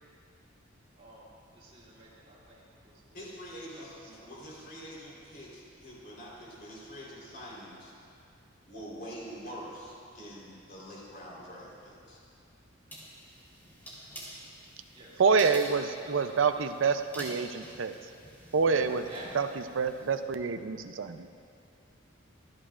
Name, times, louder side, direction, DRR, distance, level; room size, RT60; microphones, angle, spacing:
voice 1, 1.0-3.2 3.7-4.5 14.9-15.2 15.6-15.7 16.0-17.3 18.8-19.3, right 1 dB, 30° right, -6 dB, 3.1 m, -51 dB
voice 2, 3.1-7.9 8.6-12.2, equal, 50° left, -5 dB, 3.7 m, -45 dB
sound 1, 12.9-20.2, equal, 10° left, 3.6 m, -47 dB
voice 3, 15.2-17.9 18.5-19.0 19.3-19.5 19.7-21.3, right 5 dB, 70° right, 8 dB, 0.5 m, -27 dB
25.0 x 11.0 x 2.5 m, 2.4 s
head